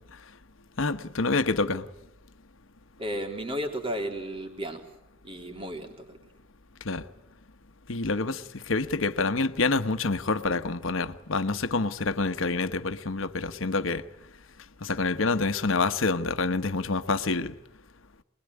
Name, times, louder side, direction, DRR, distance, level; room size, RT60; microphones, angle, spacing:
voice 1, 0.8-1.9 6.8-7.0 7.9-14.0 14.8-17.6, left 3 dB, 75° left, 1.1 m, -27 dB
voice 2, 3.0-4.8 5.2-6.2, equal, 30° right, 3.6 m, -33 dB
25.0 x 21.5 x 9.7 m
head